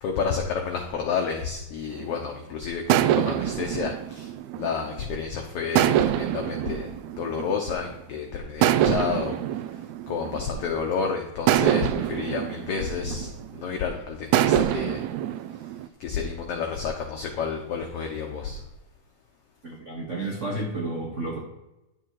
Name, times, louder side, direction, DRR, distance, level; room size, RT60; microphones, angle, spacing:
voice 1, 0.0-4.3 4.6-6.9 7.2-9.4 10.1-15.0 16.0-18.6, left 6 dB, 85° left, 2 dB, 1.3 m, -30 dB
sound 1, 2.0-2.3 2.9-5.2 5.8-8.0 8.6-10.8 11.5-13.7 14.3-15.9, right 12 dB, 85° right, 1.6 m, -25 dB
voice 2, 19.6-21.4, right 2 dB, 50° right, -2 dB, 0.9 m, -31 dB
11.0 x 6.6 x 4.6 m, 0.93 s
omnidirectional pair, 3.8 m